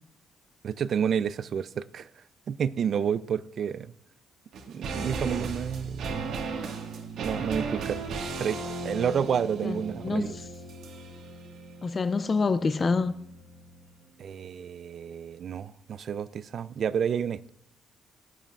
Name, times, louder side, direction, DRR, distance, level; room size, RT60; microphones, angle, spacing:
voice 1, 0.6-2.1 2.5-3.9 4.7-6.4 7.2-8.0 8.4-10.3 14.2-17.5, right 8 dB, 45° right, 0.3 m, -30 dB
sound 1, 4.5-13.9 14.2-14.3, right 4 dB, 70° right, 1.6 m, -36 dB
voice 2, 9.6-10.5 11.8-13.2, left 4 dB, 25° left, 0.4 m, -27 dB
17.0 x 11.0 x 2.4 m
cardioid pair, 165°, 0 cm